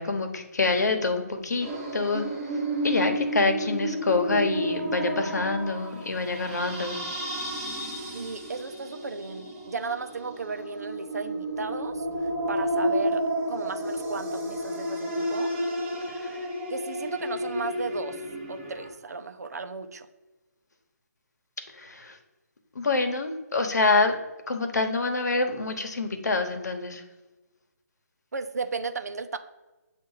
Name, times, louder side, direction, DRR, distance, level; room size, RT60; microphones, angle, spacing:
voice 1, 0.0-1.7 1.9-2.2 2.8-7.0 21.8-22.1 22.7-24.2 24.5-27.0, left 3 dB, 75° left, 5 dB, 1.1 m, -26 dB
sound 1, 1.6-18.9, right 1 dB, 15° right, 0.8 m, -31 dB
voice 2, 8.1-15.5 16.7-18.2 18.5-20.1 28.3-29.4, right 4 dB, 70° right, 9 dB, 0.6 m, -35 dB
7.5 x 2.6 x 5.6 m, 1.1 s
hypercardioid pair, 170°, 9 cm